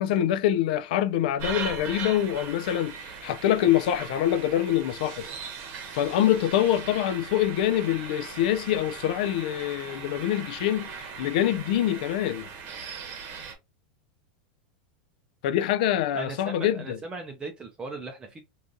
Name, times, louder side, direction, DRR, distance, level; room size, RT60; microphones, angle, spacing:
voice 1, 0.0-5.3 5.9-12.5 15.4-17.0, left 11 dB, 65° left, 0.3 m, -25 dB
sound 1, 1.4-13.5, right 5 dB, 45° right, 0.9 m, -39 dB
voice 2, 16.1-18.4, right 3 dB, 20° right, 0.5 m, -38 dB
3.8 x 2.5 x 2.6 m
supercardioid pair, 135°, 5 cm